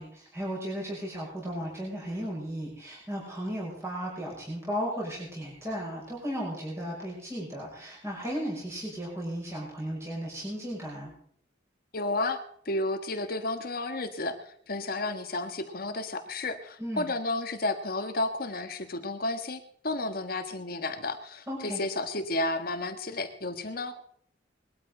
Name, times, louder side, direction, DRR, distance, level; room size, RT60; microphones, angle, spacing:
voice 1, 0.0-11.1 16.8-17.1 21.5-21.8, equal, 15° right, -4 dB, 5.8 m, -35 dB
voice 2, 11.9-12.4 12.6-24.0, left 2 dB, 55° left, 7 dB, 1.5 m, -32 dB
21.0 x 13.0 x 3.9 m, 0.63 s
head